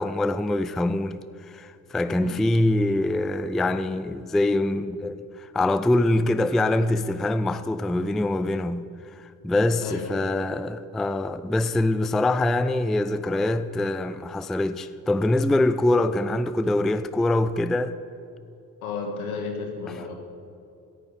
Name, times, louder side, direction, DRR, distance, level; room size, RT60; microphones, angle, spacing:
voice 1, 0.0-8.9 9.2-17.9, left 2 dB, ahead, 0.3 m, -24 dB
voice 2, 9.8-10.3 18.8-20.1, left 4 dB, 75° left, 1.7 m, -33 dB
17.0 x 9.8 x 5.5 m
figure-of-eight pair, 40°, 44 cm